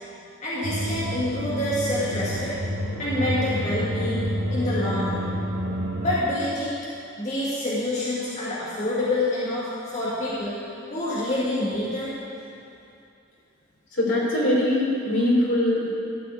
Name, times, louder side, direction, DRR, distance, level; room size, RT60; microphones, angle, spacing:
voice 1, 0.4-2.6 3.0-5.3 6.0-6.8 7.2-10.6 10.9-12.1, left 1 dB, 35° left, -8 dB, 2.0 m, -27 dB
sound 1, 0.6-6.2, equal, 70° right, 1.4 m, -29 dB
voice 2, 14.0-15.9, left 1 dB, 70° left, -5 dB, 3.5 m, -22 dB
13.0 x 5.9 x 8.6 m, 2.7 s
head